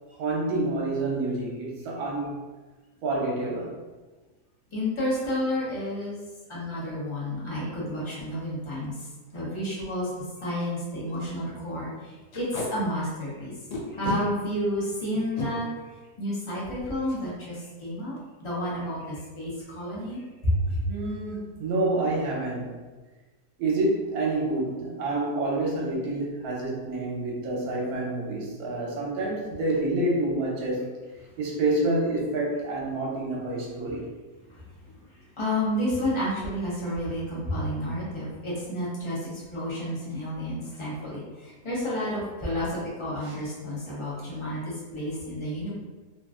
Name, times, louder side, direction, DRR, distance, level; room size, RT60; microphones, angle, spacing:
voice 1, 0.2-2.4 3.0-3.7 20.9-22.7 23.6-30.8 31.4-34.1 43.2-43.3, right 2 dB, 70° right, -3 dB, 1.2 m, -28 dB
voice 2, 4.7-6.2 6.5-13.5 13.9-15.7 16.2-20.8 34.5-34.6 35.0-45.7, equal, 35° left, -8 dB, 0.5 m, -31 dB
Packing tape duct tape, 8.7-8.9 9.3-9.4 9.6-9.8 10.2-10.3 10.6-10.8 11.1-11.3 12.3-12.7 13.7-14.2 15.1-15.5 17.0-17.2 17.6-17.7 18.0-18.4, left 2 dB, 85° left, 1.3 m, -33 dB
3.0 x 2.5 x 2.3 m, 1.3 s
omnidirectional pair, 1.7 m